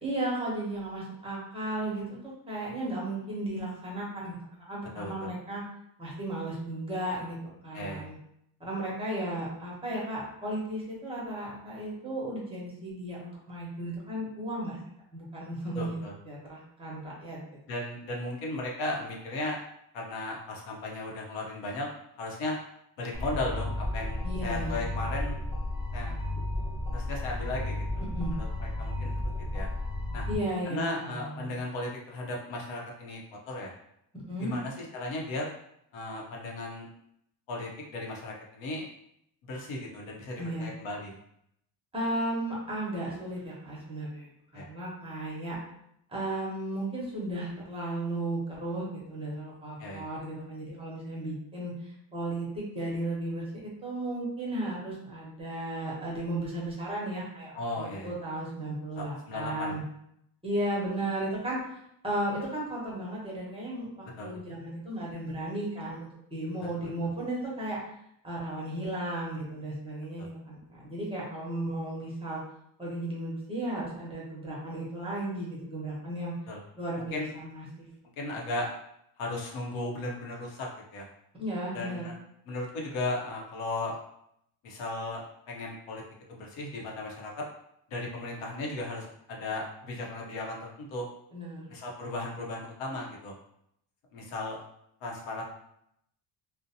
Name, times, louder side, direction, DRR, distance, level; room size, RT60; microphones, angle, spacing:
voice 1, 0.0-2.2 2.5-4.4 4.7-5.6 6.0-7.4 7.6-8.2 8.6-14.8 15.1-16.0 16.3-17.4 24.2-24.8 28.0-28.3 30.3-31.5 34.1-34.5 40.4-40.7 41.9-45.6 46.1-59.8 60.4-61.6 62.0-67.8 68.2-72.4 72.8-76.3 76.8-77.9 81.4-82.1 91.3-91.7, right 1 dB, 10° right, -5 dB, 0.8 m, -35 dB
voice 2, 4.9-5.3 7.7-8.1 15.7-16.1 17.7-19.6 19.9-21.9 22.2-22.6 23.0-25.4 25.9-26.1 26.9-27.8 28.3-29.1 29.5-29.7 30.1-30.3 30.7-33.2 33.5-33.7 34.4-35.5 35.9-36.9 37.5-38.9 39.4-41.2 44.5-44.6 49.8-50.0 57.6-58.1 59.0-59.8 64.2-64.3 66.6-66.7 70.2-70.3 76.5-76.6 77.1-77.3 78.2-78.7 79.2-81.1 81.7-82.1 82.5-84.0 84.6-85.2 85.5-86.0 86.3-87.3 87.9-91.1 91.7-93.3 94.1-94.6 95.0-95.4, left 2 dB, 85° left, -1 dB, 0.8 m, -36 dB
sound 1, 23.1-30.3, left 1 dB, 15° left, 0.4 m, -33 dB
2.5 x 2.1 x 2.7 m, 0.74 s
cardioid pair, 120°, 46 cm